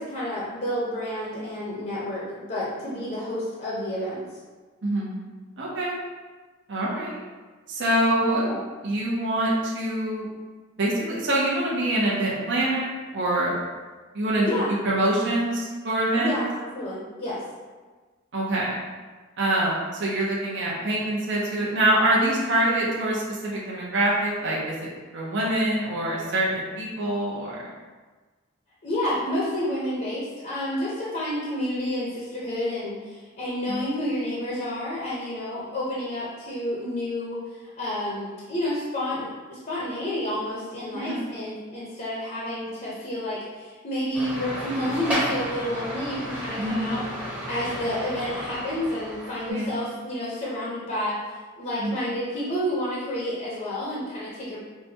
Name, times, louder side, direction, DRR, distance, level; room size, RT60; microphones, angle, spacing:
voice 1, 0.0-4.3 8.1-8.6 14.4-14.8 16.1-17.4 28.8-47.0 47.3-51.2 51.6-54.6, left 1 dB, 40° left, -8 dB, 0.7 m, -30 dB
voice 2, 4.8-5.2 5.6-6.0 6.7-7.2 7.7-8.5 8.8-10.3 10.8-13.5 14.1-14.5 14.8-16.3 18.3-18.8 19.4-27.7 33.6-33.8 40.9-41.2 46.6-46.9 49.5-49.8 51.8-52.0, right 1 dB, 60° right, -5 dB, 0.8 m, -25 dB
sound 1, 44.1-49.5, equal, 5° right, 0.8 m, -32 dB
5.6 x 2.2 x 2.7 m, 1.4 s
head